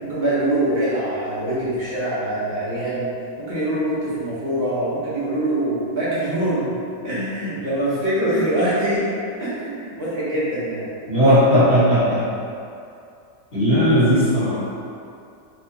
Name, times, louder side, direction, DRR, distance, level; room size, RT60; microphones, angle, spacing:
voice 1, 0.0-3.1 3.4-6.7 7.0-9.0 9.4-10.9, right 1 dB, 40° right, -11 dB, 1.0 m, -24 dB
voice 2, 11.1-12.3 13.5-14.6, equal, 40° left, -15 dB, 1.4 m, -16 dB
3.4 x 3.0 x 2.3 m, 2.6 s
omnidirectional pair, 1.9 m